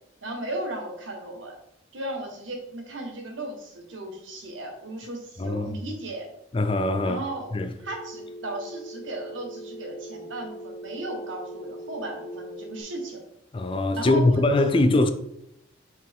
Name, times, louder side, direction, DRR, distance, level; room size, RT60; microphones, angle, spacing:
voice 1, 0.2-1.5 1.9-6.3 7.0-7.5 7.8-13.2 14.0-14.6, right 1 dB, 75° right, 1.4 m, -35 dB
voice 2, 5.4-5.8 6.5-7.2 7.5-7.7 13.5-15.1, left 2 dB, 25° left, 0.4 m, -22 dB
Telephone, 7.8-12.8, right 1 dB, 5° left, 1.9 m, -41 dB
6.1 x 4.4 x 3.6 m
head